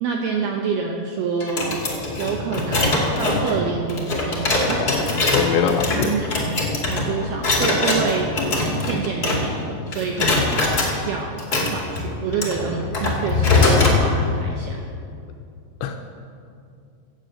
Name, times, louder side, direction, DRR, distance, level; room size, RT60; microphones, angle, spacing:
voice 1, 0.0-1.8 2.2-4.9 5.5-6.5 6.9-8.3 8.8-10.5 11.1-14.9, right 5 dB, 80° right, 1 dB, 2.3 m, -27 dB
sound 1, 1.4-9.7 9.9-10.9 11.4-14.0, left 2 dB, 45° left, 1.3 m, -22 dB
voice 2, 5.3-6.2 15.8-16.0, left 7 dB, 80° left, 5 dB, 2.8 m, -22 dB
16.5 x 8.1 x 7.8 m, 2.4 s
omnidirectional pair, 5.8 m